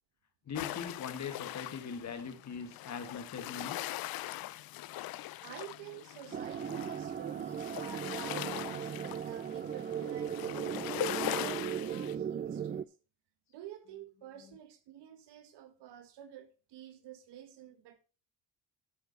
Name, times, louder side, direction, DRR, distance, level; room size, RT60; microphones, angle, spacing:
sound 1, 0.5-12.2, left 16 dB, 55° left, 0.6 m, -41 dB
voice 1, 0.5-3.8, left 6 dB, 40° left, 1.8 m, -41 dB
voice 2, 5.4-10.8 11.3-12.9 13.5-18.0, right 11 dB, 70° right, 1.7 m, -49 dB
sound 2, 6.3-12.8, right 8 dB, 25° right, 0.4 m, -37 dB
11.5 x 6.3 x 4.0 m
cardioid pair, 100°, 43 cm